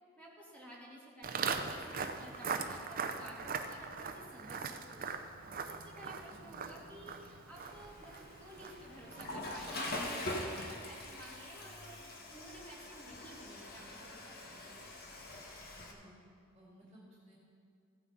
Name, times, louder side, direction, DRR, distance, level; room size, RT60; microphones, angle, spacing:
voice 1, 0.2-5.1 5.6-14.8, equal, 5° left, -5 dB, 2.0 m, -53 dB
Walk footsteps, 1.2-10.4, right 5 dB, 45° right, 0.6 m, -41 dB
voice 2, 6.3-6.6 15.9-16.1 16.5-17.3, equal, 15° right, -5 dB, 2.3 m, -58 dB
Water / Toilet flush, 7.5-15.9, left 1 dB, 50° left, 1.3 m, -44 dB
15.5 x 9.3 x 3.9 m, 2.5 s
head